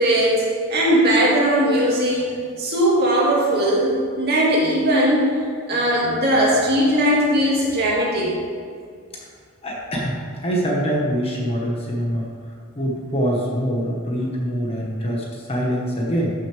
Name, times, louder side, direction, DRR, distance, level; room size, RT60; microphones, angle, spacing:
voice 1, 0.0-2.3 2.6-5.3 5.7-8.3, right 1 dB, 45° right, -5 dB, 2.3 m, -19 dB
voice 2, 9.6-10.2 10.4-12.3 12.7-16.3, equal, 25° left, -3 dB, 1.5 m, -24 dB
13.5 x 6.6 x 3.5 m, 2.1 s
head